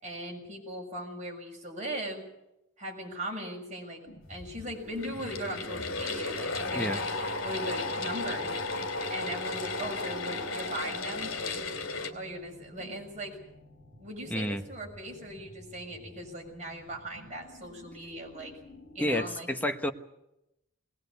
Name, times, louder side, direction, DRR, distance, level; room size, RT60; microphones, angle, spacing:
voice 1, 0.0-2.2 2.8-4.0 4.3-7.0 7.4-8.5 9.1-11.3 12.1-13.4 14.0-18.5 18.9-19.5, right 1 dB, 35° right, 0 dB, 6.5 m, -39 dB
sound 1, 4.1-19.2, left 1 dB, 45° left, 4.8 m, -52 dB
sound 2, 4.9-12.1, left 3 dB, 75° left, 2.9 m, -34 dB
voice 2, 14.3-14.6 19.0-19.9, left 1 dB, 10° left, 5 dB, 1.1 m, -30 dB
20.0 x 19.5 x 8.4 m, 0.89 s
head